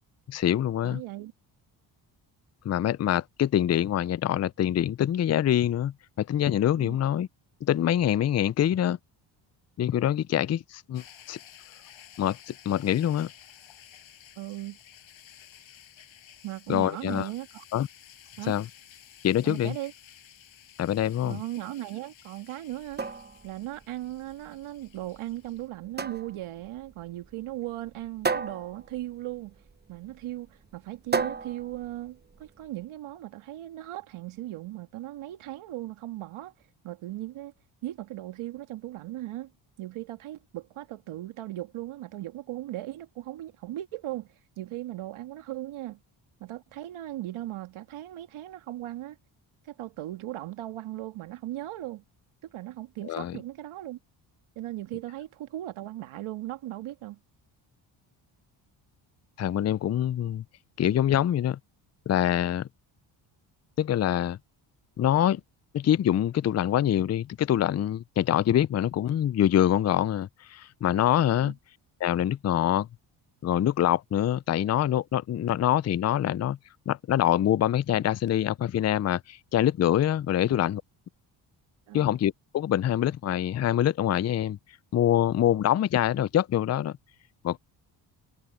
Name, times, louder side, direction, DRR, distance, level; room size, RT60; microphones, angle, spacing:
voice 1, 0.3-1.0 2.6-7.3 7.6-9.0 9.8-11.4 12.2-13.3 16.7-17.3 17.7-17.9 18.5-18.6 19.2-19.8 20.8-21.4 53.0-53.4 59.4-60.4 60.8-61.6 62.1-62.7 63.8-64.4 65.0-65.4 65.7-71.5 72.0-72.9 73.4-76.6 76.9-80.8 81.9-84.6 84.9-86.9 87.4-87.6, left 11 dB, 35° left, 0.5 m, -25 dB
voice 2, 0.8-1.3 6.8-7.0 14.4-14.8 16.4-17.6 18.4-18.6 19.4-19.9 21.2-23.0 23.4-29.6 29.9-36.5 36.8-37.5 37.8-39.5 39.8-46.0 46.4-49.2 49.6-52.0 52.4-54.0 54.6-57.2 71.4-71.5 81.9-82.1, right 15 dB, 75° right, 2.1 m, -38 dB
sound 1, 10.9-25.7, left 10 dB, 65° left, 7.6 m, -53 dB
sound 2, 22.7-32.7, right 5 dB, 20° right, 0.9 m, -35 dB
supercardioid pair, 65°, 49 cm